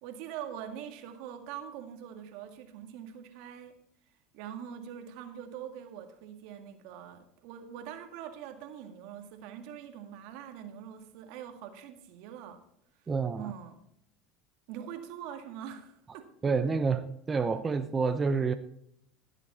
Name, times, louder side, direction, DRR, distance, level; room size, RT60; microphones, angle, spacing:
voice 1, 0.0-3.8 4.3-12.6 13.0-13.1 13.4-13.8 14.7-16.3, right 9 dB, 70° right, 1.9 m, -43 dB
voice 2, 13.1-13.5 16.4-18.5, right 5 dB, 25° right, 0.8 m, -28 dB
15.5 x 8.2 x 4.3 m
hypercardioid pair, 90°, 0 cm